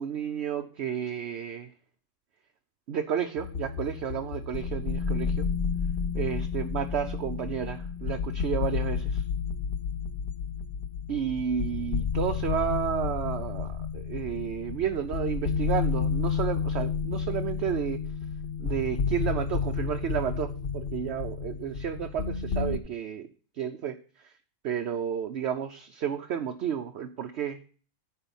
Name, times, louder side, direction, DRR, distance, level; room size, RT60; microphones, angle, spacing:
voice 1, 0.0-1.7 2.9-5.5 6.1-9.2 11.1-18.0 18.6-23.3 23.6-24.3 24.6-27.6, right 8 dB, 60° right, 7 dB, 0.9 m, -32 dB
sound 1, 3.4-22.8, left 6 dB, 50° left, 0.7 m, -31 dB
10.0 x 4.8 x 7.0 m, 0.42 s
omnidirectional pair, 1.4 m